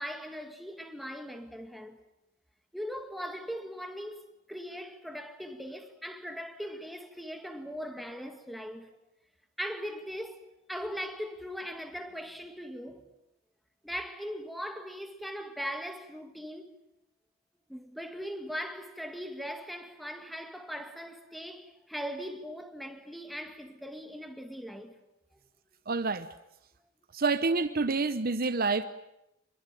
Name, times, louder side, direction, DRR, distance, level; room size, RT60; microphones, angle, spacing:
voice 1, 0.0-2.0 2.7-8.9 9.6-13.1 13.8-16.8 17.7-24.9, equal, ahead, 2.1 m, -40 dB
voice 2, 25.9-26.3 27.1-28.8, right 4 dB, 45° right, 0.9 m, -28 dB
25.0 x 22.0 x 9.2 m
head